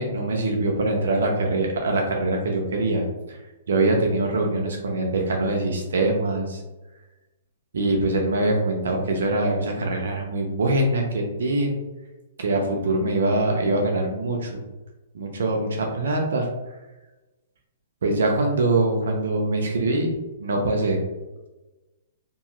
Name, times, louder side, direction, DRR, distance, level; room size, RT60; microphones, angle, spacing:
voice 1, 0.0-3.0 3.3-3.4 3.7-6.6 7.7-11.8 12.4-14.5 15.1-16.5 18.0-20.1 20.4-21.0, right 2 dB, 80° right, 1 dB, 0.5 m, -23 dB
2.7 x 2.3 x 2.9 m, 1.1 s
hypercardioid pair, 150°, 0 cm